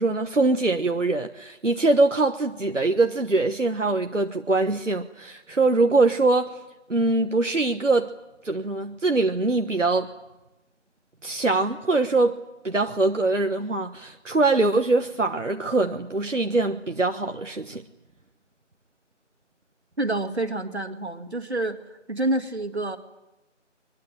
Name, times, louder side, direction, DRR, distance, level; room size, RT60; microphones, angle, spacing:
voice 1, 0.0-6.6 6.9-8.1 8.4-10.1 11.2-12.4 12.6-17.8, right 3 dB, 85° right, 5 dB, 1.4 m, -23 dB
voice 2, 20.0-21.8 22.1-23.0, right 2 dB, 60° right, 7 dB, 2.3 m, -27 dB
23.0 x 21.0 x 9.0 m, 1.0 s
figure-of-eight pair, 170°, 37 cm